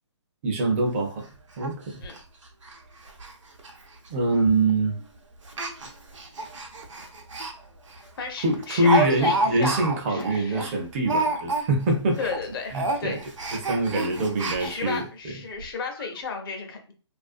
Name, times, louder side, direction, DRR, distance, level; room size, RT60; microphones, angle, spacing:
voice 1, 0.4-1.3 1.6-2.0 4.1-4.9 8.4-12.3 12.7-13.2 13.5-15.0, right 1 dB, 30° right, 2 dB, 0.4 m, -24 dB
Speech, 0.7-0.8 1.1-1.2 1.6-1.7 2.0-2.2 2.6-2.8 3.0-3.3 3.6-3.7 4.5-4.7 5.4-7.5 7.9-8.0 8.4-11.9 12.2-12.4 12.7-15.0 15.6-15.7 16.0-16.1, right 3 dB, 85° right, 0.6 m, -29 dB
voice 2, 8.2-9.8 10.1-10.7 12.2-13.2 14.6-16.9, left 5 dB, 50° left, 4 dB, 0.6 m, -34 dB
2.5 x 2.2 x 2.4 m, 0.36 s
hypercardioid pair, 145°, 15 cm